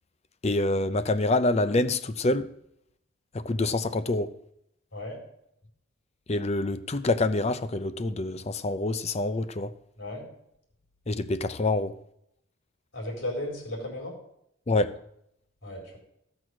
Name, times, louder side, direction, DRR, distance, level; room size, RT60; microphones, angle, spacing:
voice 1, 0.4-2.5 3.3-4.3 6.3-9.7 11.1-11.9 14.7-14.9, left 2 dB, 30° left, 0.5 m, -26 dB
voice 2, 12.9-14.1 15.6-16.0, left 1 dB, 75° left, 4.3 m, -35 dB
15.0 x 6.2 x 6.2 m
head